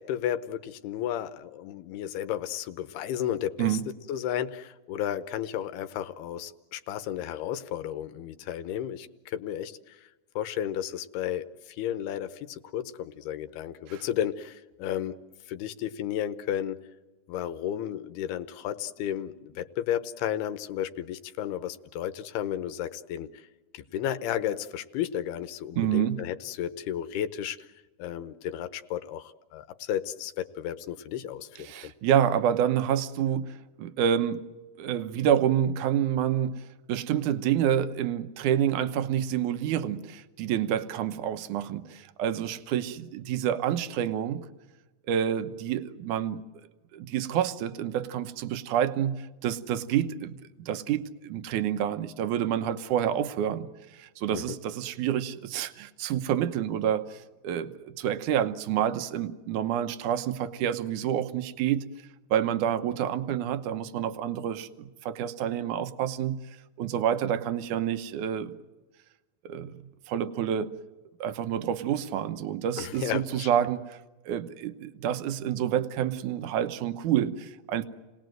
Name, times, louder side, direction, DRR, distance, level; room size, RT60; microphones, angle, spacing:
voice 1, 0.0-3.8 4.1-10.1 10.4-15.1 15.5-16.8 17.3-23.5 23.7-27.7 28.0-31.9 54.3-54.6 72.8-73.5, left 10 dB, 80° left, 10 dB, 2.9 m, -33 dB
voice 2, 25.8-26.2 31.6-34.5 34.8-44.5 45.1-46.4 46.9-61.9 62.3-66.4 66.8-68.6 69.5-69.8 70.1-70.8 71.2-74.0 74.3-77.8, right 10 dB, 65° right, 10 dB, 2.1 m, -28 dB
30.0 x 19.5 x 7.8 m, 1.2 s
omnidirectional pair, 4.6 m